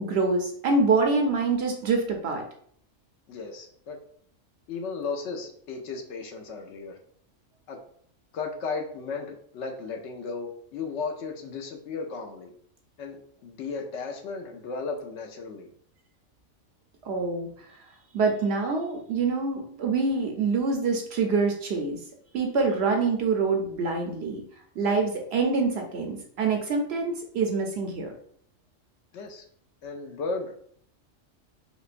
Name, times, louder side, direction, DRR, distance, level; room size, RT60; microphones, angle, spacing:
voice 1, 0.0-2.4 17.0-17.5 18.1-22.0 22.3-24.4 24.8-28.1, right 4 dB, 65° right, 3 dB, 0.7 m, -25 dB
voice 2, 3.3-4.0 4.7-7.0 7.7-7.8 8.3-12.5 13.0-15.7 29.1-29.4 29.8-30.5, left 4 dB, 70° left, 3 dB, 0.8 m, -35 dB
4.9 x 2.1 x 2.5 m, 0.63 s
omnidirectional pair, 1.3 m